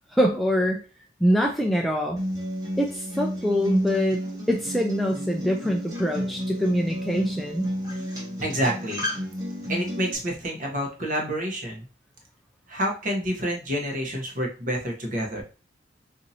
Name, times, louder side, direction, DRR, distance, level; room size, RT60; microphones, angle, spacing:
voice 1, 0.1-0.8 1.2-2.2 2.8-4.2 4.5-7.7, equal, ahead, 0 dB, 0.3 m, -24 dB
Acoustic guitar, 2.2-10.1, equal, 20° right, 1.0 m, -32 dB
voice 2, 8.4-9.1 9.7-11.8 12.7-15.4, equal, 45° right, 0 dB, 0.9 m, -28 dB
4.0 x 2.7 x 2.7 m, 0.35 s
head